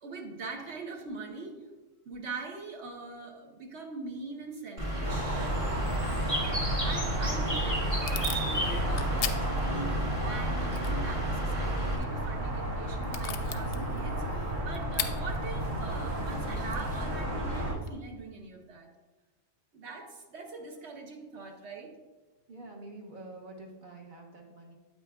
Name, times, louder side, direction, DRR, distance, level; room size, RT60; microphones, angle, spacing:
voice 1, 0.0-1.6 2.0-5.6 6.5-18.9 19.7-21.9, right 3 dB, 65° right, 2 dB, 1.2 m, -42 dB
Bird, 4.8-12.0, right 1 dB, 25° right, 1.5 m, -32 dB
sound 1, 5.0-17.7, right 1 dB, 80° right, 1.7 m, -33 dB
Packing tape duct tape / Tearing, 7.1-17.9, left 8 dB, 60° left, 0.7 m, -42 dB
voice 2, 22.5-24.7, right 2 dB, 45° right, 0 dB, 1.2 m, -47 dB
8.7 x 8.0 x 2.3 m, 1.2 s
omnidirectional pair, 1.3 m